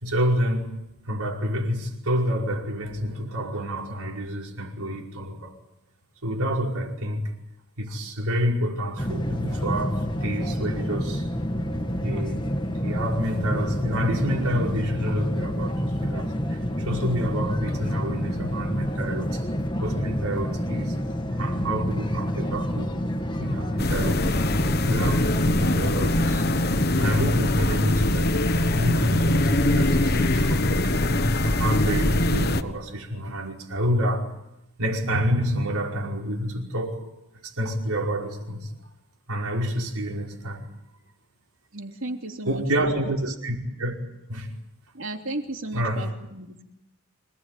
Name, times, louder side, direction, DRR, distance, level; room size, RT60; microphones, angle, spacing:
voice 1, 0.0-0.7 1.0-5.5 6.2-7.3 7.8-11.3 12.0-12.5 12.8-19.5 19.8-21.0 21.3-22.9 23.3-24.4 24.9-26.5 27.0-31.0 31.4-34.3 34.8-37.1 37.4-38.7 39.3-40.7 42.5-43.9 44.3-44.5 45.7-46.1, equal, 90° right, 5.2 m, -28 dB
sound 1, 9.0-26.9, equal, 20° left, 1.6 m, -28 dB
sound 2, 23.8-32.6, left 1 dB, 45° left, 1.2 m, -22 dB
voice 2, 41.7-42.9 44.9-46.6, right 2 dB, 65° right, 3.2 m, -34 dB
26.5 x 19.0 x 9.3 m
head